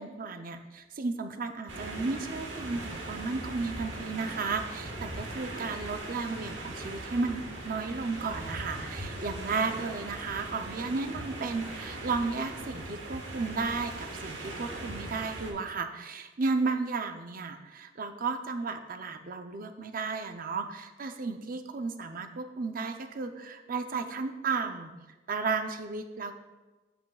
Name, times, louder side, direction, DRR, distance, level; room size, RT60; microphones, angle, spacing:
voice 1, 0.0-24.9 25.3-26.4, right 4 dB, 50° right, 7 dB, 0.6 m, -34 dB
sound 1, 1.7-15.5, right 2 dB, 80° right, 1.5 m, -40 dB
14.0 x 5.2 x 2.4 m, 1.2 s
head